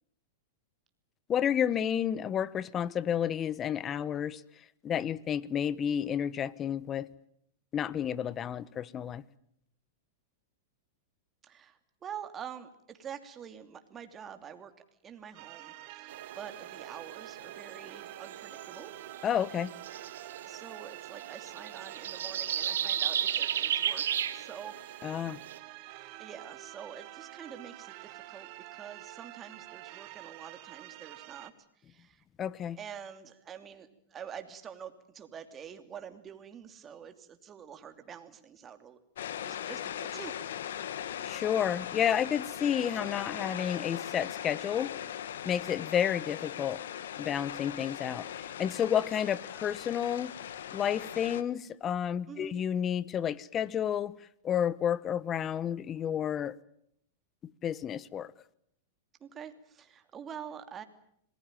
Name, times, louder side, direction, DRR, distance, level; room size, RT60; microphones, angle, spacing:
voice 1, 1.3-4.4 4.8-7.1 7.7-9.2 19.2-19.7 25.0-25.4 32.4-32.8 41.2-44.9 45.4-46.8 47.2-50.3 50.7-54.1 54.4-56.6 57.4-58.3, left 9 dB, 30° left, 1.1 m, -31 dB
voice 2, 11.4-14.7 15.0-18.9 20.5-24.0 24.3-24.8 26.2-31.5 31.9-32.2 32.8-39.0 39.4-40.3 52.3-52.5 59.2-60.8, right 8 dB, 25° right, 2.9 m, -46 dB
sound 1, 15.3-31.5, right 18 dB, 50° right, 2.0 m, -48 dB
sound 2, 16.1-25.6, right 9 dB, 80° right, 1.6 m, -35 dB
sound 3, 39.2-51.4, left 10 dB, 75° left, 1.6 m, -39 dB
26.5 x 20.0 x 9.1 m
hypercardioid pair, 115°, 0 cm